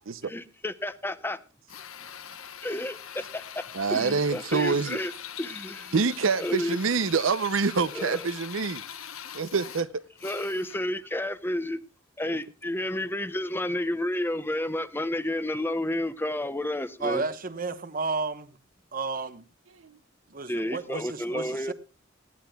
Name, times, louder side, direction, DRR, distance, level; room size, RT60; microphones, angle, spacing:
voice 1, 0.2-1.4 2.6-3.0 3.9-5.1 5.4-5.9 6.4-6.8 7.9-8.2 10.2-11.8 12.2-17.3 20.5-21.7, left 1 dB, 10° left, 0.8 m, -30 dB
Drill, 1.7-11.0, left 9 dB, 85° left, 1.0 m, -42 dB
voice 2, 3.7-5.0 5.9-8.8 9.3-10.0 12.3-12.4 19.8-20.0, right 4 dB, 75° right, 0.7 m, -26 dB
voice 3, 17.0-18.6 18.9-19.4 20.3-21.7, right 4 dB, 45° right, 1.1 m, -32 dB
19.5 x 15.0 x 2.3 m
head